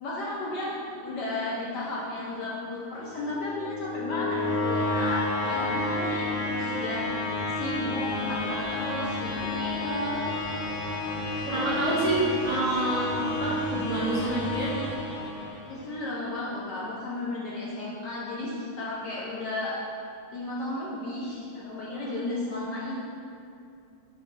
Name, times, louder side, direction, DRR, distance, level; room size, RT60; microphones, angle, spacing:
voice 1, 0.0-7.0 7.6-10.3 11.9-12.1 12.5-12.7 15.7-19.7 20.3-23.0, left 2 dB, 65° left, -5 dB, 1.1 m, -34 dB
sound 1, 3.0-16.0, left 2 dB, 90° left, 1.6 m, -31 dB
voice 2, 11.5-14.7 21.9-22.1, right 2 dB, 30° right, -10 dB, 1.2 m, -28 dB
6.1 x 3.2 x 5.2 m, 2.5 s
omnidirectional pair, 2.3 m